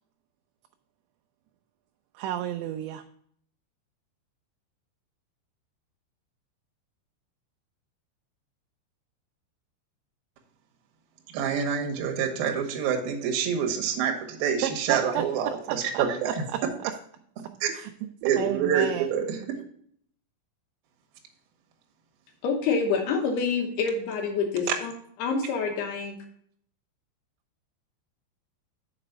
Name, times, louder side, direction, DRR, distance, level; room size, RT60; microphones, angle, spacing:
voice 1, 2.1-3.0 14.6-15.2 15.7-16.9 17.7-19.1, right 12 dB, 85° right, 2.7 m, -32 dB
voice 2, 11.3-16.3 17.6-17.7 18.2-19.4, right 7 dB, 70° right, 2.6 m, -27 dB
voice 3, 22.4-24.9 25.2-26.2, left 5 dB, 70° left, 2.8 m, -27 dB
6.8 x 5.0 x 6.4 m
omnidirectional pair, 5.2 m